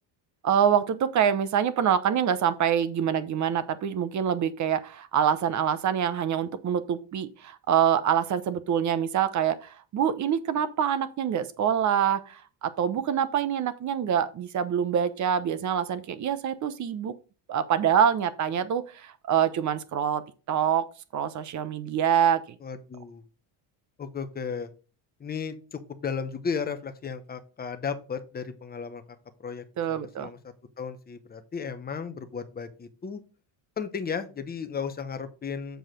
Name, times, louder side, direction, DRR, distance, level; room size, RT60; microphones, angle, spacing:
voice 1, 0.4-17.1 17.5-20.2 20.5-20.9 21.1-22.4 29.8-30.3, right 8 dB, 35° right, 14 dB, 0.8 m, -25 dB
voice 2, 22.6-23.2 24.0-24.7 25.2-29.0 29.4-30.4 30.8-33.2 33.8-35.8, left 6 dB, 20° left, 9 dB, 0.9 m, -34 dB
7.9 x 4.7 x 5.1 m, 0.34 s
cardioid pair, 150°, 49 cm